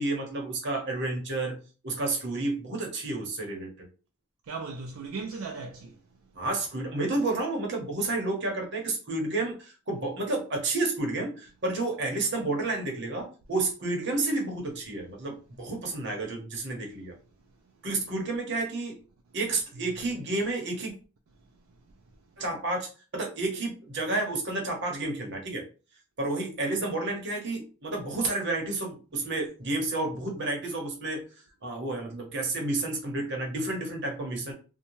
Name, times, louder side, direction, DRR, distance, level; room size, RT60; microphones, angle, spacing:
voice 1, 0.0-3.9 6.3-17.1 17.8-19.0 19.3-20.9 22.4-25.6 26.2-31.2 31.6-34.5, right 2 dB, 55° right, 0.8 m, -30 dB
voice 2, 4.4-6.3 21.5-22.0, right 4 dB, 75° right, 0.4 m, -39 dB
2.6 x 2.1 x 2.9 m
head